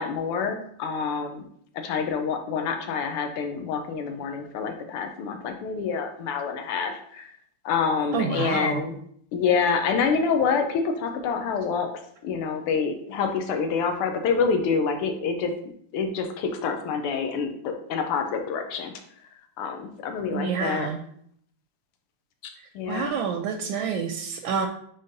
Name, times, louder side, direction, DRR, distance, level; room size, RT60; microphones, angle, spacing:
voice 1, 0.0-1.4 1.8-7.3 7.7-9.0 9.3-11.9 12.2-15.5 15.9-18.9 19.6-20.9 22.8-23.1, left 5 dB, 85° left, 5 dB, 1.7 m, -27 dB
voice 2, 8.1-8.8 20.3-21.0 22.9-24.7, right 6 dB, 75° right, 5 dB, 1.3 m, -28 dB
9.7 x 3.7 x 2.7 m, 0.65 s
omnidirectional pair, 2.4 m